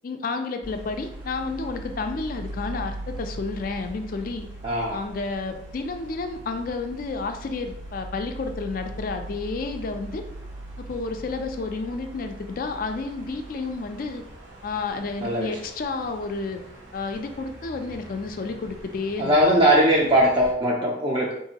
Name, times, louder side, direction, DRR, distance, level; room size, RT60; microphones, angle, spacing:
voice 1, 0.0-4.5 4.9-10.2 10.8-14.2 14.6-16.6 16.9-19.6, left 3 dB, 45° left, 6 dB, 0.3 m, -31 dB
sound 1, 0.6-20.5, right 1 dB, 70° right, 0.9 m, -41 dB
voice 2, 4.6-5.0 15.2-15.6 19.2-21.3, equal, 25° right, -4 dB, 0.4 m, -20 dB
3.8 x 2.5 x 2.8 m, 0.75 s
head